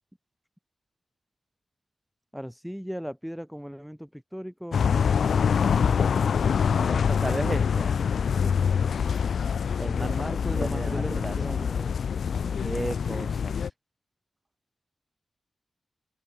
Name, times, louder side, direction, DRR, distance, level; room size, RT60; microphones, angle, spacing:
voice 1, 2.3-4.8 6.0-6.1 6.8-7.0 8.4-8.5 10.0-12.1 12.4-12.6, equal, ahead, 7.0 m, -37 dB
sound 1, 4.7-13.7, left 7 dB, 75° left, 1.8 m, -25 dB
voice 2, 6.7-8.0 9.8-10.1 10.6-11.7 12.6-13.6, right 2 dB, 20° right, 4.4 m, -34 dB
wide cardioid pair, 130°, 0 cm